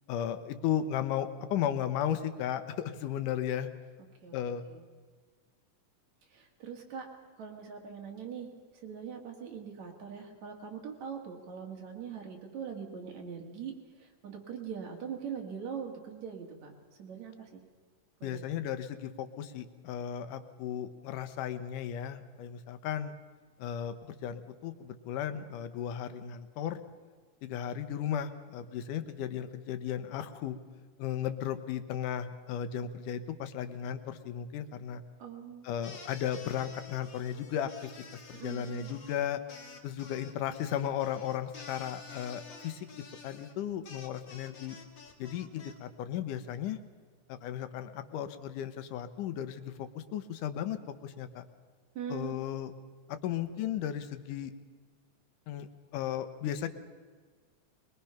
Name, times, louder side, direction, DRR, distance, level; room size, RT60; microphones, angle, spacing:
voice 1, 0.1-3.7 4.3-4.7 18.2-23.2 23.6-26.8 27.4-30.6 31.0-35.0 35.6-37.9 38.3-39.4 39.8-42.9 43.2-44.8 45.2-46.8 47.3-51.4 52.1-52.7 53.1-54.5 55.5-55.7 55.9-56.7, left 10 dB, 80° left, 11 dB, 2.5 m, -35 dB
voice 2, 6.3-7.1 7.4-16.7 17.0-17.6 18.2-18.4 35.2-35.7 38.3-38.9 51.9-52.3, right 7 dB, 60° right, 2 dB, 3.4 m, -42 dB
sound 1, 35.8-45.7, left 4 dB, 45° left, 2.0 m, -50 dB
21.5 x 21.5 x 5.8 m, 1.5 s
omnidirectional pair, 3.6 m